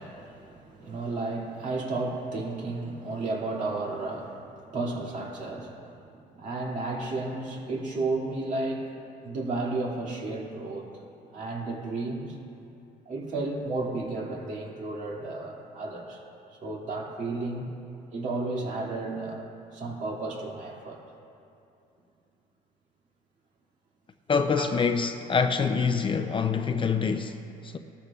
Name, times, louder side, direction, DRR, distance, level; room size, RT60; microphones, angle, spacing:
voice 1, 0.0-8.9 9.2-10.9 11.3-12.4 13.1-16.2 16.6-17.7 18.1-21.0 24.6-24.7, right 2 dB, 50° right, 2.6 m, -33 dB
voice 2, 24.3-27.8, left 5 dB, 30° left, 0.6 m, -26 dB
19.0 x 13.0 x 2.5 m
cardioid pair, 110°, 17 cm